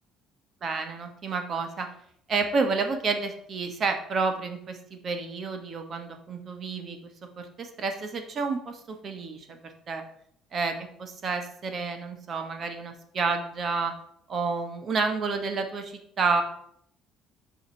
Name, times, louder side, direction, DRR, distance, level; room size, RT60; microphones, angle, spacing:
voice 1, 0.6-1.9 2.3-7.0 7.4-9.6 9.9-10.0 10.5-13.9 14.3-16.4, right 4 dB, 35° right, 6 dB, 1.2 m, -30 dB
7.3 x 5.1 x 6.2 m, 0.68 s
cardioid pair, 155°, 0 cm